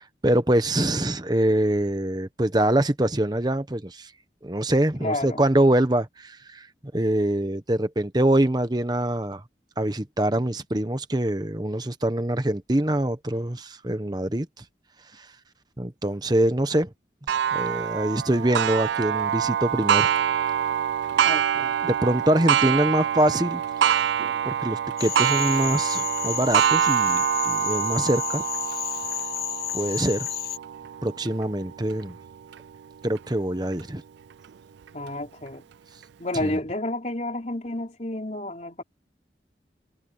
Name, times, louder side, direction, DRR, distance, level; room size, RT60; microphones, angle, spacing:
voice 1, 0.0-4.1 4.4-6.7 6.9-9.4 9.8-14.6 15.8-16.9 17.5-20.1 21.8-23.6 24.4-28.4 29.7-30.3 31.0-32.2 33.0-34.0 36.4-36.5, right 1 dB, 25° right, 1.1 m, -24 dB
voice 2, 5.0-5.4 21.2-21.7 34.9-35.6 36.2-38.8, left 1 dB, 40° left, 3.7 m, -30 dB
Clock, 17.3-32.6 33.2-33.3 33.8-33.9 34.9-35.0, right 9 dB, 80° right, 0.3 m, -25 dB
Cricket / Frog, 25.0-30.6, left 13 dB, 55° left, 0.7 m, -32 dB
head